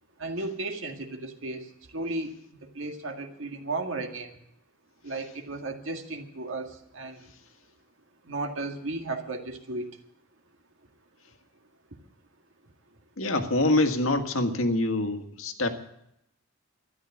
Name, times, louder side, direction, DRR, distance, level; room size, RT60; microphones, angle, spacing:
voice 1, 0.2-4.4 5.0-7.3 8.2-9.9, right 2 dB, 70° right, 4 dB, 1.9 m, -35 dB
voice 2, 13.2-15.7, left 2 dB, 75° left, 6 dB, 1.7 m, -25 dB
13.0 x 11.5 x 8.5 m, 0.78 s
head